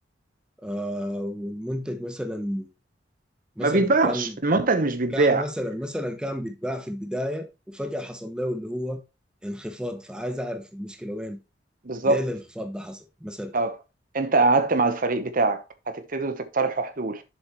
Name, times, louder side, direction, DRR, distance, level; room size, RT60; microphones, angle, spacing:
voice 1, 0.6-2.7 3.6-4.4 5.1-9.0 9.4-11.4 12.0-13.5, equal, 5° right, 0.8 m, -32 dB
voice 2, 3.6-5.4 11.8-12.2 13.5-13.7 14.1-17.2, right 3 dB, 50° right, 1.0 m, -23 dB
7.7 x 7.2 x 3.0 m
head